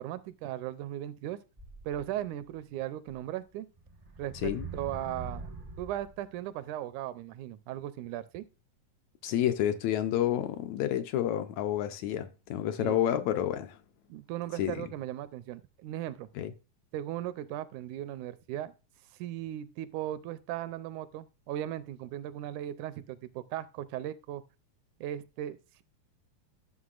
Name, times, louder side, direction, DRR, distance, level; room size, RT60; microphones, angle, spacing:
voice 1, 0.0-1.4 1.8-3.7 4.2-5.5 5.8-8.5 12.8-13.0 14.1-16.3 16.9-18.7 19.1-24.4 25.0-25.8, right 12 dB, 85° right, 2.0 m, -37 dB
sound 1, 1.6-2.5 3.1-3.2 3.8-6.2, right 3 dB, 35° right, 0.5 m, -43 dB
voice 2, 9.2-13.8 14.6-14.8 16.4-16.5, left 11 dB, 80° left, 1.8 m, -29 dB
11.0 x 6.4 x 2.4 m
omnidirectional pair, 3.5 m